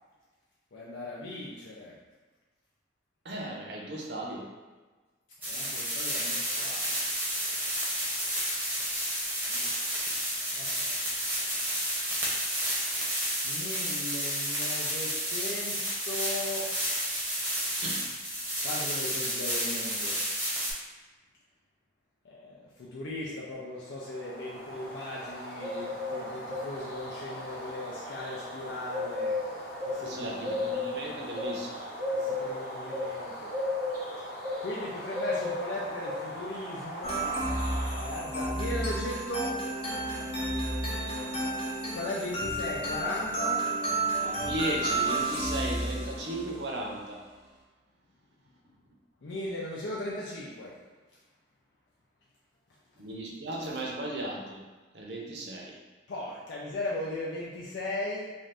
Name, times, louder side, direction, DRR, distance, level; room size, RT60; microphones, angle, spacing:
voice 1, 0.7-2.0 5.5-6.9 9.5-9.8 10.1-10.9 11.5-11.7 13.4-16.7 18.6-20.2 22.2-29.4 29.8-30.3 32.1-33.6 34.6-37.3 38.0-39.6 41.9-43.7 49.2-50.8 56.1-58.3, left 1 dB, 80° left, -5 dB, 0.5 m, -37 dB
voice 2, 3.2-4.5 17.8-18.1 30.0-31.8 44.2-47.3 53.0-54.6 54.9-55.8, right 1 dB, 65° right, -1 dB, 0.6 m, -36 dB
sound 1, 5.4-20.7, equal, 10° right, 0.7 m, -31 dB
sound 2, 24.0-38.6, left 2 dB, 55° left, 0.8 m, -36 dB
sound 3, 37.0-46.7, right 2 dB, 30° left, 0.5 m, -31 dB
2.6 x 2.5 x 3.3 m, 1.3 s
head